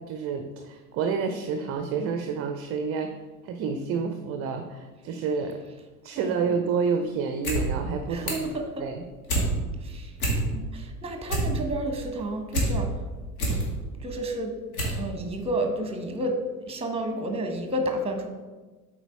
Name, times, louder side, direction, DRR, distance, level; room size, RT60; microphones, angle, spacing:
voice 1, 0.1-3.1 3.4-5.6 6.0-8.3 8.8-9.0, right 5 dB, 30° right, 6 dB, 0.6 m, -29 dB
voice 2, 6.1-6.6 8.1-8.8 9.8-10.1 10.5-12.9 13.5-13.6 14.0-14.5 15.0-16.3 16.6-18.3, right 1 dB, 10° right, 4 dB, 1.2 m, -31 dB
sound 1, 7.3-7.6 7.9-8.5 8.9-9.5 9.9-10.0 10.2-10.7 11.1-12.7 13.1-13.6 14.2-14.3 14.7-15.0 15.3-15.4, right 1 dB, 65° left, 2.3 m, -27 dB
8.0 x 4.6 x 4.5 m, 1.3 s
figure-of-eight pair, 70°, 47 cm